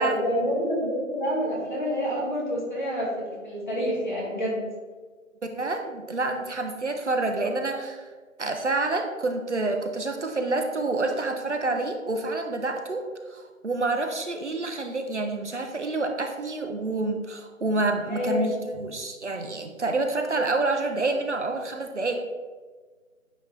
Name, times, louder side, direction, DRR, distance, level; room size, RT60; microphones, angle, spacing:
voice 1, 0.0-4.6 18.1-18.5, equal, 35° left, -4 dB, 1.9 m, -28 dB
voice 2, 5.4-8.1 8.4-22.1, right 2 dB, 60° right, 4 dB, 0.7 m, -28 dB
9.1 x 3.1 x 3.8 m, 1.4 s
figure-of-eight pair, 170°, 41 cm